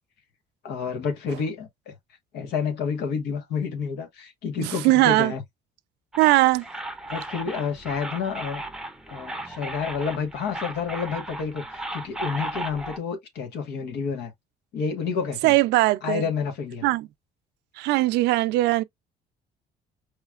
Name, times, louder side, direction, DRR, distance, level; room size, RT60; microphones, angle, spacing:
voice 1, 0.6-1.9 2.3-5.4 7.1-8.6 9.1-14.3 14.7-15.5 16.0-16.8, left 6 dB, 80° left, 1.3 m, -29 dB
voice 2, 4.6-5.3 6.2-6.6 15.4-16.2 16.8-17.1 17.8-18.8, right 18 dB, 85° right, 0.4 m, -20 dB
sound 1, 6.1-13.0, right 1 dB, 5° right, 0.7 m, -35 dB
4.9 x 3.1 x 2.3 m
cardioid pair, 110°, 17 cm